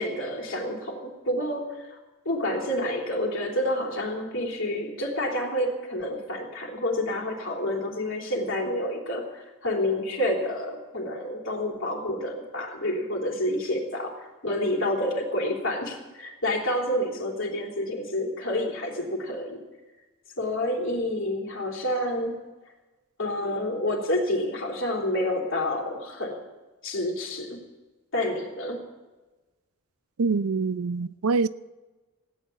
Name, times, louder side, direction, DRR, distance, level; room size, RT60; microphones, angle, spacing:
voice 1, 0.0-2.0 2.3-19.6 20.4-22.4 23.2-26.4 26.8-27.6 28.1-28.8, left 1 dB, 60° left, 0 dB, 3.4 m, -29 dB
voice 2, 30.2-31.5, right 4 dB, 90° right, 16 dB, 0.5 m, -25 dB
17.0 x 9.4 x 8.5 m, 1.2 s
head